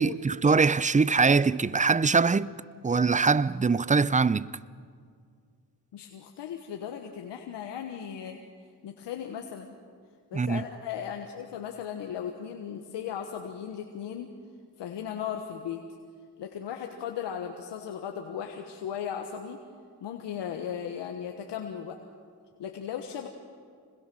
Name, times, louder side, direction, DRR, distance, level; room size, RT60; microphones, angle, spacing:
voice 1, 0.0-2.5 2.8-4.5 10.3-10.6, right 4 dB, 20° right, 0.5 m, -23 dB
voice 2, 5.9-8.4 8.8-9.7 10.3-14.3 14.8-15.8 16.4-19.6 20.0-22.0 22.6-23.3, left 8 dB, 85° left, 1.4 m, -37 dB
26.5 x 20.5 x 6.2 m
cardioid pair, 60°, 41 cm